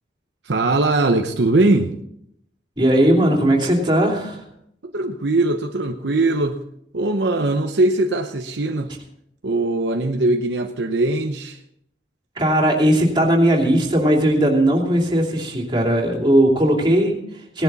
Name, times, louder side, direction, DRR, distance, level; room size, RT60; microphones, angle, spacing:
voice 1, 0.4-1.9 4.8-6.6 6.9-8.9 9.4-11.6, right 2 dB, 70° right, 5 dB, 0.8 m, -20 dB
voice 2, 2.8-4.4 12.4-17.6, right 1 dB, 25° right, -1 dB, 2.9 m, -18 dB
18.0 x 11.0 x 4.1 m, 0.73 s
head